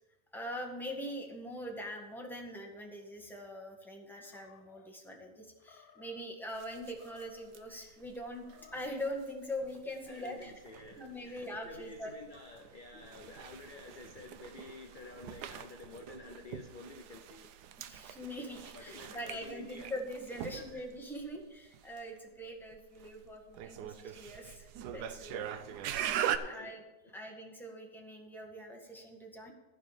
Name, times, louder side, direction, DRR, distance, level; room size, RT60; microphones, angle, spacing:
voice 1, 0.3-10.5 11.0-12.1 12.9-13.0 17.8-25.4 26.4-26.8 27.1-29.5, equal, ahead, 0 dB, 1.4 m, -43 dB
Animal, 4.2-4.9 5.6-6.2 6.8-7.6 8.3-9.0, left 6 dB, 60° left, 1.3 m, -60 dB
sound 1, 6.5-26.4, right 10 dB, 75° right, 1.2 m, -43 dB
voice 2, 10.0-17.5 18.7-19.9 20.4-20.8 25.4-25.8 26.4-26.7 27.0-27.1, left 3 dB, 40° left, 2 dB, 0.8 m, -50 dB
14.0 x 4.9 x 7.2 m, 1.1 s
omnidirectional pair, 1.9 m